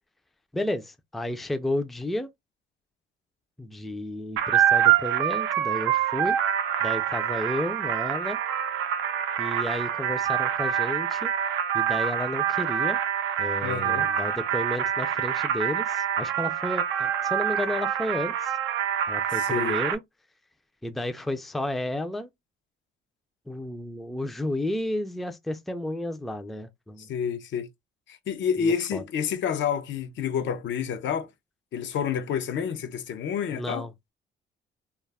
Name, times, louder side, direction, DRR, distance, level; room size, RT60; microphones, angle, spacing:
voice 1, 0.5-2.3 3.6-6.4 6.8-8.4 9.4-11.3 11.7-13.0 13.4-18.6 19.1-20.0 20.8-22.3 23.5-27.1 28.6-29.0 33.5-33.9, left 1 dB, ahead, 0.3 m, -32 dB
sound 1, 4.4-19.9, right 9 dB, 85° right, 0.5 m, -26 dB
voice 2, 13.6-14.1 19.3-19.8 27.0-27.7 28.1-31.3 31.7-33.9, left 7 dB, 70° left, 0.5 m, -29 dB
2.3 x 2.0 x 3.2 m
cardioid pair, 90°, 20 cm